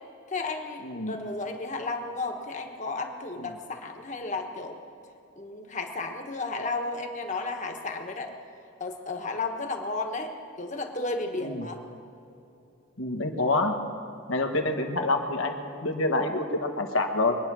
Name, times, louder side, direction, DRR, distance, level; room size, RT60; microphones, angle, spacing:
voice 1, 0.3-4.8 5.4-8.3 8.8-10.3 10.6-11.8, left 3 dB, 35° left, 3 dB, 1.3 m, -33 dB
voice 2, 0.8-1.1 3.4-3.5 11.4-11.7 13.0-13.7 14.3-17.4, left 2 dB, 80° left, 4 dB, 1.4 m, -27 dB
23.5 x 9.7 x 6.1 m, 2.8 s
head